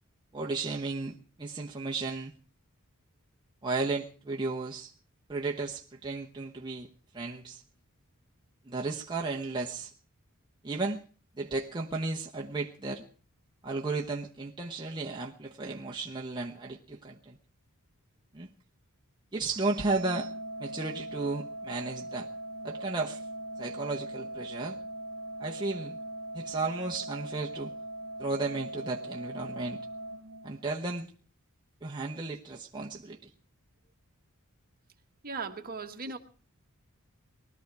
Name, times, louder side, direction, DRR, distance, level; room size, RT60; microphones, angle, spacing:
voice 1, 0.3-2.3 3.6-4.9 5.3-6.9 7.1-7.6 8.7-9.9 10.6-11.0 11.4-13.0 13.6-17.4 18.3-18.5 19.3-20.3 20.6-22.3 22.6-23.2 23.6-24.8 25.4-26.0 26.3-27.7 28.2-29.8 30.4-31.1 31.8-33.2, right 3 dB, 20° right, 1.0 m, -34 dB
Organ, 19.9-30.9, right 1 dB, 70° right, 0.9 m, -40 dB
voice 2, 35.2-36.2, right 4 dB, 45° right, 1.6 m, -37 dB
20.5 x 13.0 x 4.7 m
head